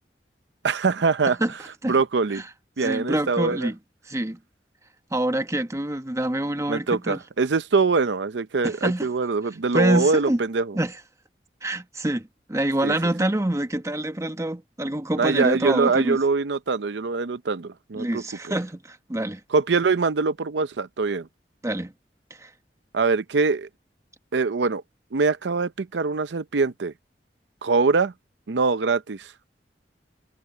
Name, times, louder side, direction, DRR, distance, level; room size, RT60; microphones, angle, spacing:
voice 1, 0.6-1.6 1.9-2.4 2.8-3.7 6.7-10.8 12.8-13.0 15.2-18.2 19.5-21.3 22.9-23.7 24.3-24.8 25.1-26.9 27.6-28.1 28.5-29.3, right 4 dB, 80° right, 0.6 m, -23 dB
voice 2, 2.8-3.8 4.1-4.4 5.1-7.2 8.6-9.1 9.7-10.4 10.7-10.9 11.6-16.2 17.9-19.4 21.6-21.9 22.4-22.5, right 1 dB, 20° right, 1.1 m, -26 dB
head